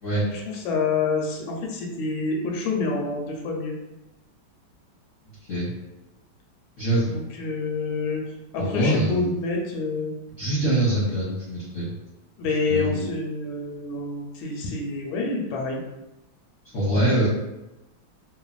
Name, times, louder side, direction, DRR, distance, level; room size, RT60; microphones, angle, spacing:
voice 1, 0.3-3.7 7.1-8.2 8.5-10.1 12.4-15.8, left 3 dB, 90° left, 0 dB, 1.4 m, -27 dB
voice 2, 6.8-7.2 8.6-9.3 10.4-11.9 12.7-13.0 16.7-17.3, right 1 dB, 60° left, -9 dB, 0.8 m, -24 dB
3.2 x 2.1 x 2.3 m, 0.97 s
omnidirectional pair, 2.1 m